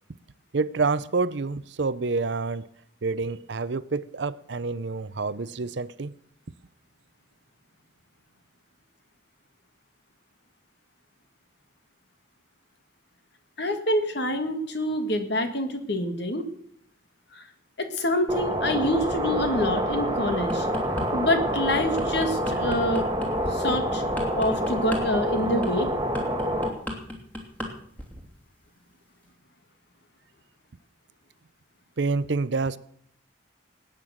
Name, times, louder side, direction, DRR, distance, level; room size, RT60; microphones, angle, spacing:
voice 1, 0.5-2.7 3.0-6.1 32.0-32.8, right 4 dB, 60° right, 0.6 m, -27 dB
voice 2, 13.6-16.5 17.4-17.5 17.8-20.7 21.1-23.1 23.5-24.0 24.3-25.9, left 1 dB, 55° left, 1.9 m, -26 dB
sound 1, 18.3-26.7, equal, 20° right, 2.3 m, -27 dB
sound 2, 20.3-21.1 21.5-27.7 28.0-28.3, left 1 dB, 10° left, 2.8 m, -34 dB
19.5 x 9.1 x 6.4 m
head